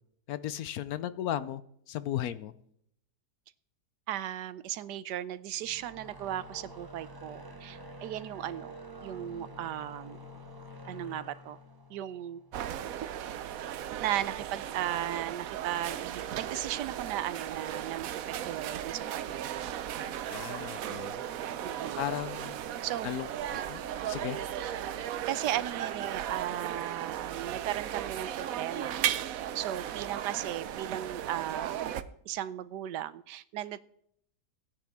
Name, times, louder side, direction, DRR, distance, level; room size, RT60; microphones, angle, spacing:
voice 1, 0.3-1.6 1.9-2.5 20.3-21.2 22.0-22.6 23.0-23.3 23.7-24.4, left 11 dB, 70° left, 14 dB, 1.0 m, -35 dB
voice 2, 4.1-8.7 9.0-10.2 10.9-11.6 11.9-12.4 14.0-19.5 21.6-22.0 22.8-23.1 25.3-29.1 29.5-33.8, right 12 dB, 90° right, 16 dB, 1.3 m, -36 dB
sound 1, 5.6-13.0, equal, 20° right, 0.8 m, -48 dB
sound 2, 12.5-32.0, right 10 dB, 65° right, 1.0 m, -36 dB
17.0 x 10.0 x 3.6 m, 0.68 s
omnidirectional pair, 1.8 m